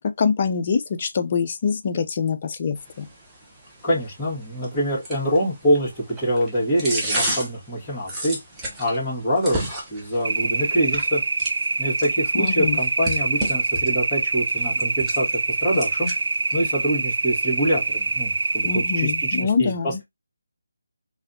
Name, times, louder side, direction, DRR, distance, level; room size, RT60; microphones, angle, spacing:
voice 1, 0.2-3.1 12.4-12.8 18.6-20.0, left 5 dB, 35° left, 0.5 m, -24 dB
sound 1, 2.8-18.7, right 1 dB, 10° right, 0.9 m, -35 dB
voice 2, 3.8-8.4 8.8-11.2 11.8-16.1 16.5-20.0, equal, 15° left, 2.0 m, -25 dB
sound 2, 10.2-19.4, right 3 dB, 60° right, 0.4 m, -25 dB
4.0 x 2.6 x 2.7 m
figure-of-eight pair, 155°, 0 cm